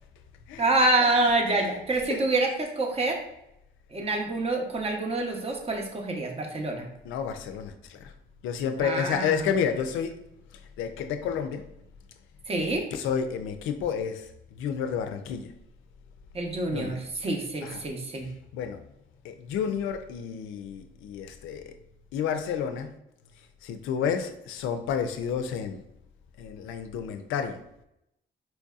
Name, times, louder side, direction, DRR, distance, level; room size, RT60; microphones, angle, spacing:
voice 1, 0.6-3.2 3.9-6.9 8.8-9.3 12.5-12.9 16.3-18.3, right 2 dB, 30° right, 0.8 m, -26 dB
voice 2, 7.1-8.1 8.4-10.2 10.8-11.7 12.6-15.5 16.7-17.0 17.6-17.8 18.5-18.8 19.2-21.8 22.1-22.9 23.6-25.8 26.4-27.6, left 7 dB, 85° left, 0.4 m, -30 dB
4.4 x 2.7 x 2.3 m
cardioid pair, 90°, 20 cm